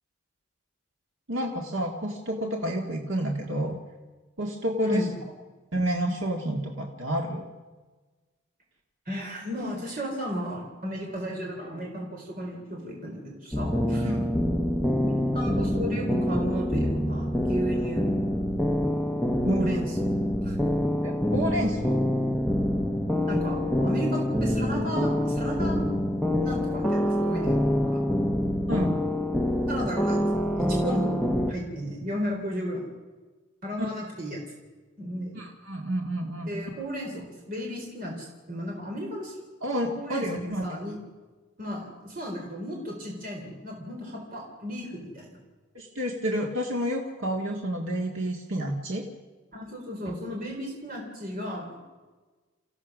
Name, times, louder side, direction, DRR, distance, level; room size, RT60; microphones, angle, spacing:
voice 1, 1.3-3.8 4.4-5.1 5.7-7.5 14.0-14.3 19.4-19.7 21.0-22.0 28.7-29.0 33.8-33.9 35.3-36.5 39.6-40.7 45.7-49.1, right 1 dB, 80° right, 0 dB, 2.0 m, -29 dB
voice 2, 4.8-5.1 9.1-14.1 15.0-18.2 19.5-20.6 23.3-25.9 26.4-27.6 27.9-28.0 29.7-31.2 31.5-32.9 33.6-34.4 35.0-35.3 36.5-39.4 39.9-41.0 41.6-45.4 49.5-51.9, equal, 45° right, -1 dB, 4.1 m, -34 dB
sound 1, 13.5-31.5, equal, ahead, 1.0 m, -26 dB
29.5 x 15.5 x 6.2 m, 1.3 s
head